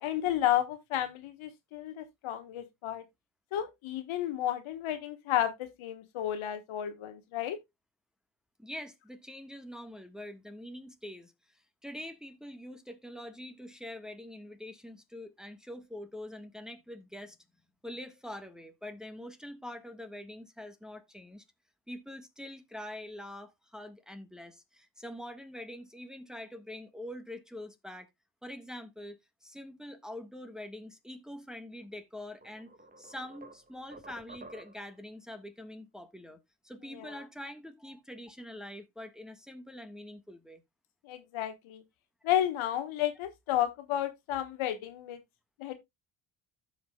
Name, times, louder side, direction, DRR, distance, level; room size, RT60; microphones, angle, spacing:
voice 1, 0.0-3.0 3.5-7.6 36.9-37.2 41.0-41.8 42.2-45.2 45.6-45.7, left 12 dB, 70° left, 1.4 m, -32 dB
voice 2, 8.6-17.4 17.8-21.4 21.9-28.1 28.4-36.4 36.6-40.6, left 1 dB, ahead, 1.5 m, -45 dB
sound 1, 31.8-31.9 32.4-35.0, right 2 dB, 20° right, 1.6 m, -51 dB
15.0 x 5.3 x 2.3 m
supercardioid pair, 65°, 49 cm